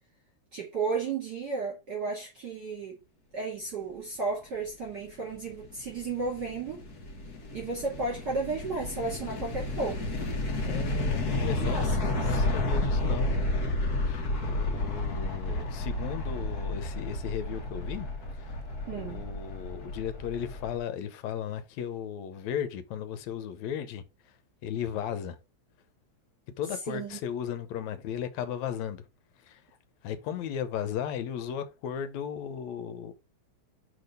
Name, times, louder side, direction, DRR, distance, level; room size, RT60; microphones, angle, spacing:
voice 1, 0.5-3.0 3.3-6.8 7.5-10.0 11.6-12.5 18.9-19.2 26.9-27.2, right 4 dB, 40° right, 2.6 m, -33 dB
sound 1, 5.3-20.8, left 2 dB, 40° left, 1.5 m, -31 dB
voice 2, 10.7-13.3 13.9-18.1 18.3-18.6 18.9-24.0 24.6-25.4 26.6-29.0 29.4-29.6 30.0-33.1, left 9 dB, 75° left, 2.1 m, -35 dB
4.9 x 4.6 x 5.2 m
omnidirectional pair, 3.3 m